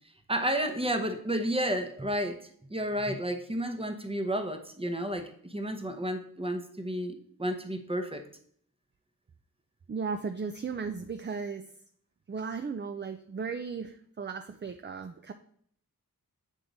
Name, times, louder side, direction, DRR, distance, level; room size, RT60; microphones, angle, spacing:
voice 1, 0.3-8.2, right 1 dB, 15° right, 6 dB, 0.8 m, -31 dB
voice 2, 9.9-11.6 12.3-15.3, right 5 dB, 30° right, 7 dB, 0.4 m, -36 dB
7.8 x 3.7 x 3.9 m, 0.63 s
wide cardioid pair, 55°, 36 cm